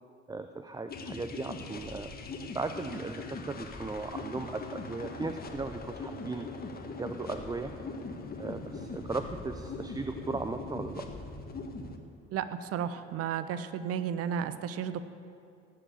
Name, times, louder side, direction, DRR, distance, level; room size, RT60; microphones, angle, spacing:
voice 1, 0.3-2.1 2.5-6.5 7.0-7.7 8.4-11.1, right 3 dB, 10° right, 8 dB, 0.6 m, -37 dB
sound 1, 0.9-12.0, left 3 dB, 25° left, 1.6 m, -41 dB
voice 2, 12.3-15.0, right 8 dB, 45° right, 13 dB, 0.9 m, -33 dB
17.0 x 7.7 x 8.8 m, 2.5 s
figure-of-eight pair, 55°, 34 cm